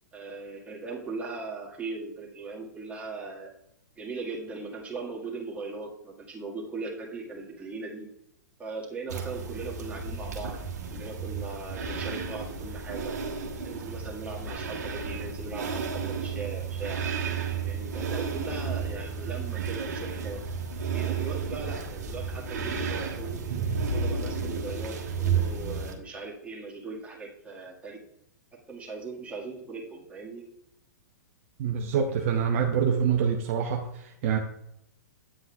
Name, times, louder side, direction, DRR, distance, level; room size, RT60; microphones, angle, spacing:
voice 1, 0.1-3.5 4.0-8.1 8.6-10.6 10.9-13.1 13.6-17.1 17.6-20.4 20.8-23.4 23.9-28.0 28.7-30.4, right 3 dB, 15° right, -2 dB, 1.8 m, -39 dB
sound 1, 9.1-25.9, right 5 dB, 70° right, 1.4 m, -32 dB
voice 2, 31.6-34.4, right 7 dB, 50° right, 3 dB, 0.8 m, -26 dB
8.8 x 7.6 x 2.4 m, 0.80 s
figure-of-eight pair, 110°, 9 cm